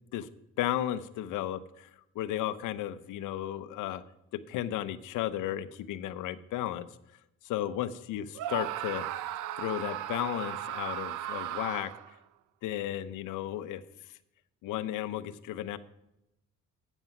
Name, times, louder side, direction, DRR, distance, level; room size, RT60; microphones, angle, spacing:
voice 1, 0.6-1.9 2.2-4.0 4.5-6.9 7.4-9.1 9.6-11.9 12.6-13.8 14.6-15.8, left 12 dB, 90° left, 15 dB, 0.7 m, -34 dB
Screaming, 8.3-12.1, right 12 dB, 90° right, 0.6 m, -36 dB
9.5 x 8.2 x 5.9 m, 0.87 s
cardioid pair, 90°, 30 cm